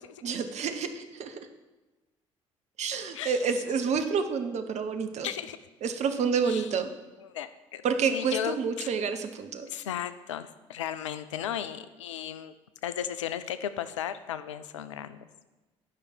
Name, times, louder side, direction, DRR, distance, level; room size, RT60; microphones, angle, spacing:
voice 1, 0.2-1.5 2.8-5.3 5.8-6.9 7.8-9.7, right 6 dB, 45° right, 7 dB, 0.9 m, -29 dB
voice 2, 5.2-5.6 6.5-6.7 7.2-7.8 8.1-8.9 9.7-12.5 12.8-15.3, left 10 dB, 75° left, 12 dB, 0.4 m, -35 dB
9.7 x 5.1 x 6.0 m, 1.1 s
figure-of-eight pair, 50°, 16 cm